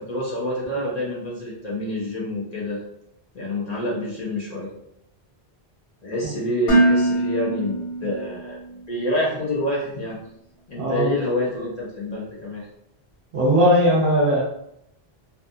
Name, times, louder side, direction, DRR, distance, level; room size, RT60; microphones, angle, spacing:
voice 1, 0.0-2.8 3.3-4.7 6.0-8.6 8.9-10.2 10.7-12.7, left 1 dB, 50° left, -5 dB, 0.6 m, -27 dB
Dishes pots and pans, 6.7-8.7, right 2 dB, 75° left, 1.1 m, -22 dB
voice 2, 13.3-14.4, equal, 65° right, -5 dB, 0.9 m, -18 dB
2.5 x 2.3 x 2.6 m, 0.78 s
omnidirectional pair, 1.1 m